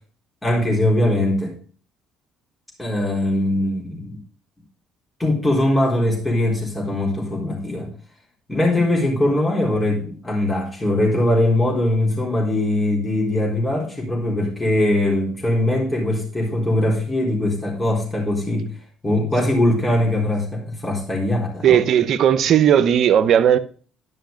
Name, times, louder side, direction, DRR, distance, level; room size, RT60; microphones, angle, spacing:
voice 1, 0.4-1.6 2.8-4.2 5.2-7.9 8.5-18.7 19.0-21.8, left 1 dB, 15° left, 4.1 m, -21 dB
voice 2, 21.6-23.6, right 9 dB, 60° right, 0.8 m, -16 dB
11.0 x 5.7 x 5.2 m
supercardioid pair, 80°, 0 cm